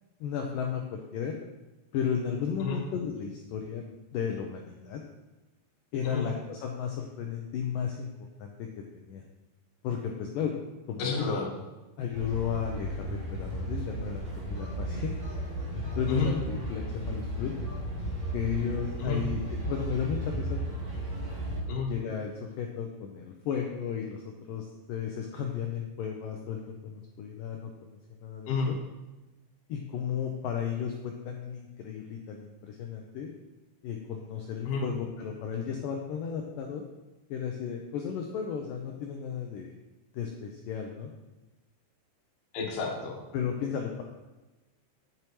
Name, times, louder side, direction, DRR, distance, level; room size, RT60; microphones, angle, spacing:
voice 1, 0.2-1.3 1.9-3.8 4.1-5.0 5.9-8.1 8.4-8.7 9.0-9.2 9.8-10.5 10.9-11.3 12.0-15.1 15.7-17.5 18.3-21.1 21.9-22.3 22.6-28.8 29.7-33.3 33.8-36.8 37.3-39.7 40.1-41.1 43.3-44.0, left 7 dB, 90° left, 1 dB, 1.9 m, -34 dB
voice 2, 11.0-11.4 16.1-16.3 19.0-19.2 21.7-21.9 28.5-28.7 34.7-34.8 42.5-43.1, left 4 dB, 60° left, -2 dB, 2.8 m, -30 dB
sound 1, 12.1-21.6, right 1 dB, 35° right, 0.8 m, -34 dB
8.9 x 8.2 x 3.1 m, 1.1 s
omnidirectional pair, 4.7 m